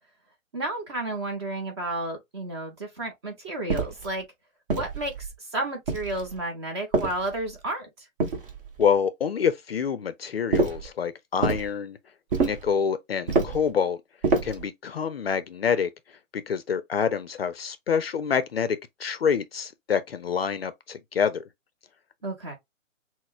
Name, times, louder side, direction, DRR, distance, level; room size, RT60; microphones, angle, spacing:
voice 1, 0.5-4.2 4.7-8.1 22.2-22.6, right 2 dB, 20° right, 0.7 m, -32 dB
sound 1, 3.7-4.1 4.7-5.3 5.9-6.4 6.9-7.6 8.2-8.9 10.5-10.9 11.4-11.7 12.3-12.7 13.3-13.7 14.2-14.7, right 4 dB, 40° right, 1.2 m, -27 dB
voice 2, 8.8-12.0 12.4-14.0 14.4-15.9 16.3-21.4, left 7 dB, 50° left, 0.5 m, -27 dB
6.0 x 2.1 x 2.4 m
hypercardioid pair, 150°, 40 cm